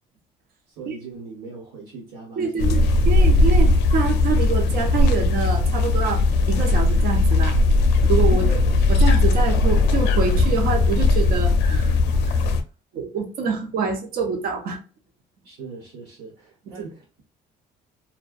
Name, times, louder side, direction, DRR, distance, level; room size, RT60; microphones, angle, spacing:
voice 1, 0.7-2.9 8.3-8.8 15.4-17.2, right 4 dB, 85° right, 1.1 m, -41 dB
voice 2, 2.4-7.6 8.1-8.6 8.9-12.0 12.3-12.4 12.9-14.8, right 5 dB, 60° right, 0.6 m, -26 dB
sound 1, 2.6-12.6, left 2 dB, 85° left, 0.4 m, -18 dB
2.3 x 2.1 x 2.4 m
cardioid pair, 110°, 17 cm